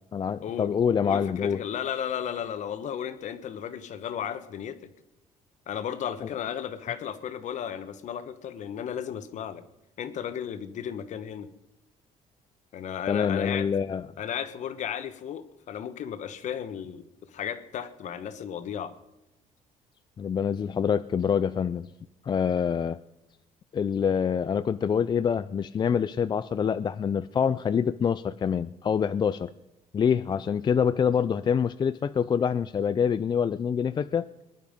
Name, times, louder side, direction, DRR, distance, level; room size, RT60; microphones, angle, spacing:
voice 1, 0.1-1.6 13.1-14.0 20.2-21.9 22.2-23.0 23.7-29.5 29.9-34.3, left 7 dB, 30° left, 12 dB, 0.4 m, -26 dB
voice 2, 1.0-4.8 5.7-9.6 10.0-11.5 12.7-13.7 14.2-18.9, left 9 dB, 60° left, 11 dB, 1.3 m, -34 dB
20.5 x 11.0 x 5.3 m, 0.89 s
cardioid pair, 115°, 14 cm